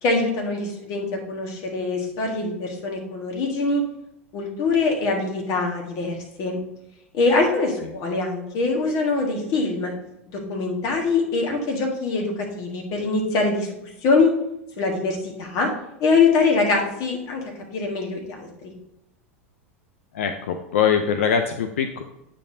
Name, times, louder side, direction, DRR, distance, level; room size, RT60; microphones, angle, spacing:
voice 1, 0.0-3.8 4.3-6.6 7.1-9.9 10.5-13.7 14.0-14.3 14.8-15.7 16.0-17.4 17.7-18.7, left 3 dB, 50° left, 1 dB, 1.6 m, -23 dB
voice 2, 20.1-22.0, left 7 dB, 75° left, 7 dB, 0.5 m, -22 dB
8.3 x 5.4 x 2.7 m, 0.86 s
hypercardioid pair, 95°, 7 cm